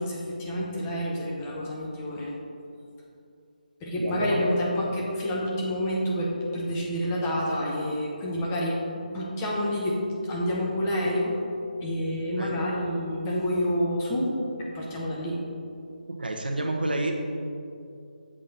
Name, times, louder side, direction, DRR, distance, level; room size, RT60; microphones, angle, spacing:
voice 1, 0.0-2.3 3.8-11.4 11.8-14.3 14.7-15.4, equal, 15° left, -4 dB, 0.8 m, -28 dB
voice 2, 4.0-4.4 12.4-12.6 16.1-17.1, right 2 dB, 90° right, 2 dB, 0.9 m, -29 dB
7.5 x 3.7 x 4.1 m, 2.5 s
figure-of-eight pair, 165°, 5 cm